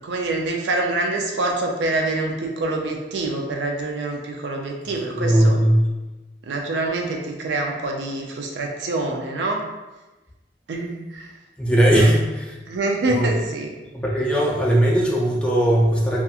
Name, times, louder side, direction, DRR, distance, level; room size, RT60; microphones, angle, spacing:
voice 1, 0.0-5.6 6.5-9.6 10.7-11.3 11.9-12.1 12.7-13.7, right 2 dB, 75° right, 1 dB, 0.4 m, -25 dB
voice 2, 5.1-5.9 11.6-12.5 13.1-13.3 13.9-16.2, right 1 dB, 5° left, -4 dB, 0.3 m, -18 dB
2.8 x 2.3 x 2.3 m, 1.1 s
head